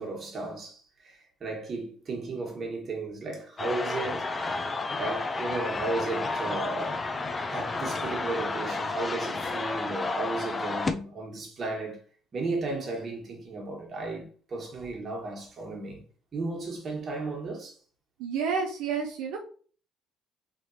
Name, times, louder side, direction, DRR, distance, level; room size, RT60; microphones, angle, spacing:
voice 1, 0.0-4.6 5.0-7.0 7.5-12.0 12.3-16.0 16.3-17.8, right 3 dB, 40° right, 1.3 m, -34 dB
sound 1, 3.6-10.9, left 3 dB, 25° left, 0.4 m, -31 dB
voice 2, 18.2-19.4, right 6 dB, 85° right, 0.5 m, -30 dB
3.1 x 2.9 x 2.7 m
supercardioid pair, 85°, 0 cm